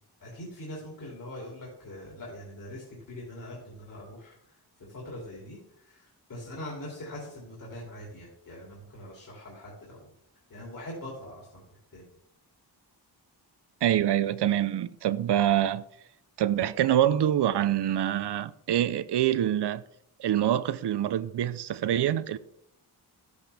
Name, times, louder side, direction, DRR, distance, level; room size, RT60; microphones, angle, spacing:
voice 1, 0.2-10.1 10.5-12.1, left 1 dB, 50° left, 2.8 m, -43 dB
voice 2, 13.8-15.8 16.4-19.8 20.2-22.4, right 11 dB, 80° right, 0.6 m, -25 dB
12.5 x 8.2 x 3.4 m
wide cardioid pair, 155°, 41 cm